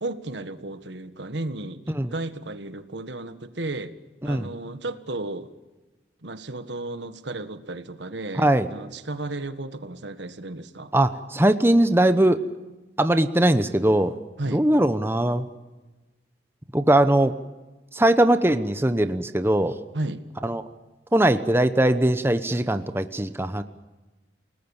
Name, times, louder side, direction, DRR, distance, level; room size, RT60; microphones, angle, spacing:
voice 1, 0.0-4.0 4.2-5.5 6.2-10.9 14.4-14.6 19.9-20.2, right 2 dB, 85° right, 10 dB, 1.6 m, -34 dB
voice 2, 8.4-8.7 10.9-12.4 13.0-14.1 14.5-15.5 16.7-17.4 17.9-19.8 20.4-20.6 21.1-23.6, right 1 dB, 15° right, 10 dB, 0.9 m, -20 dB
29.5 x 19.0 x 7.2 m, 1.1 s
head